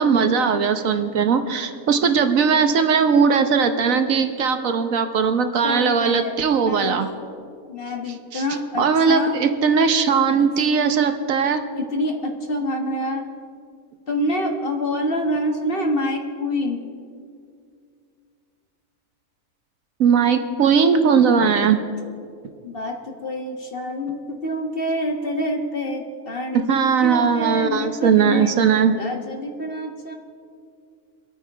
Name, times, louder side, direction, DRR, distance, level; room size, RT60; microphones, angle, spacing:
voice 1, 0.0-7.1 8.3-8.4 8.8-11.6 20.0-21.8 26.5-28.9, right 6 dB, 65° right, 8 dB, 1.2 m, -19 dB
voice 2, 5.6-7.2 7.7-9.3 10.4-10.5 11.7-13.3 14.1-16.8 22.6-28.5 29.0-30.1, left 1 dB, 40° left, 3 dB, 1.5 m, -27 dB
25.0 x 9.0 x 4.7 m, 2.3 s
omnidirectional pair, 1.6 m